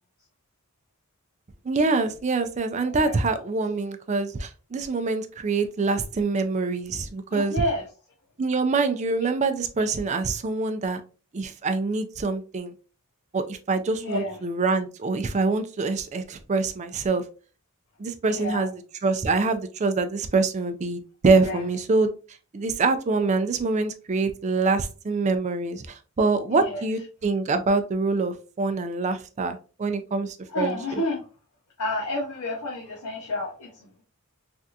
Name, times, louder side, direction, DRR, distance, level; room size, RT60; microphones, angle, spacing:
voice 1, 1.6-7.5 8.4-11.0 11.3-12.7 13.3-17.2 18.0-18.7 19.0-22.1 22.5-31.0, right 3 dB, 35° right, 8 dB, 0.4 m, -25 dB
voice 2, 2.9-3.2 7.3-7.8 13.9-14.4 18.2-18.7 21.4-21.7 26.5-26.8 30.5-31.2 31.8-34.0, left 1 dB, 85° left, -2 dB, 0.8 m, -30 dB
3.4 x 2.4 x 2.7 m, 0.35 s
head